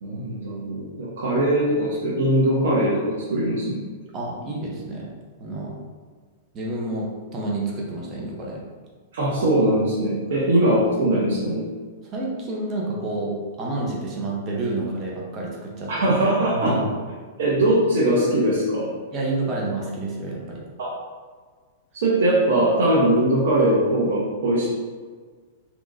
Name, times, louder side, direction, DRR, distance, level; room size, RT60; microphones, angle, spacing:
voice 1, 0.0-3.8 9.1-11.6 15.9-16.8 17.4-18.9 20.8-21.0 21.9-24.7, right 1 dB, 75° right, -7 dB, 0.8 m, -21 dB
voice 2, 4.1-5.1 5.4-5.7 6.5-8.6 12.1-15.9 16.5-16.9 19.1-20.6, right 2 dB, 30° right, -3 dB, 0.7 m, -29 dB
3.8 x 2.9 x 2.6 m, 1.5 s
hypercardioid pair, 140°, 0 cm